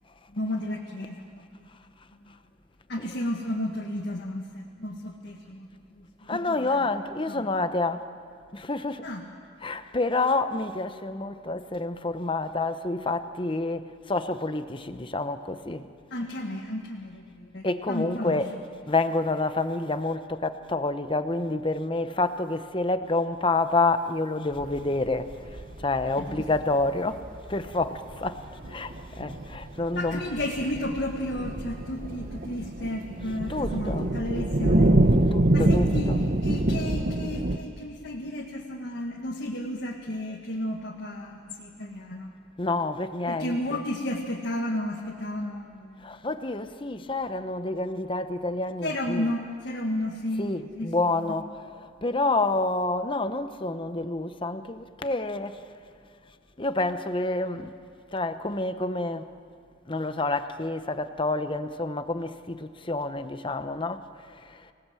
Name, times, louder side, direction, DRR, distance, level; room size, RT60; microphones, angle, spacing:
voice 1, 0.3-1.4 2.3-2.4 2.9-6.9 7.3-7.5 9.0-9.2 16.1-18.4 26.2-26.4 30.0-34.9 35.5-42.3 43.3-46.2 48.8-50.5 50.8-51.1, left 1 dB, 55° left, 1.8 m, -33 dB
voice 2, 6.3-8.0 8.5-9.1 9.6-15.9 17.6-18.5 18.9-25.3 25.8-30.2 33.5-34.1 35.3-36.2 42.6-43.8 46.0-49.3 50.4-55.6 56.6-57.7 58.1-59.3 59.9-64.6, left 2 dB, 25° left, 0.9 m, -28 dB
sound 1, 24.6-37.6, right 1 dB, 45° right, 1.0 m, -26 dB
26.0 x 19.0 x 7.6 m
head